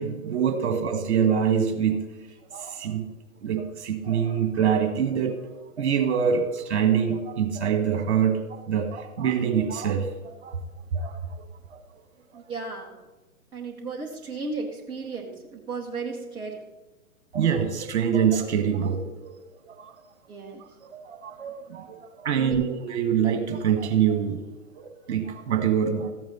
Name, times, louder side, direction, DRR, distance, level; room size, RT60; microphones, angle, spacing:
voice 1, 0.0-2.0 2.5-3.1 3.4-5.5 5.8-10.6 10.9-11.4 11.7-11.8 17.3-19.3 19.6-19.9 20.9-24.4 24.8-26.1, right 7 dB, 50° right, 6 dB, 1.7 m, -25 dB
voice 2, 12.3-13.0 13.5-16.6 20.3-20.6 22.4-22.7, right 4 dB, 10° right, -2 dB, 0.9 m, -34 dB
14.5 x 8.9 x 4.1 m, 1.1 s
figure-of-eight pair, 120°, 43 cm